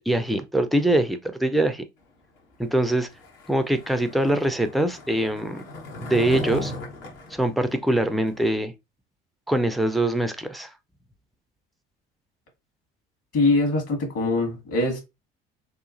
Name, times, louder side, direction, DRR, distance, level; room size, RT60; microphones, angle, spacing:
voice 1, 0.0-1.8 2.6-3.1 3.5-5.6 6.0-6.7 7.3-8.7 9.5-10.7, right 1 dB, ahead, 0.3 m, -23 dB
Skateboard, 3.1-8.5, left 2 dB, 70° left, 1.0 m, -36 dB
voice 2, 13.3-15.0, left 2 dB, 50° left, 1.4 m, -22 dB
2.9 x 2.4 x 2.5 m
figure-of-eight pair, 60°, 30 cm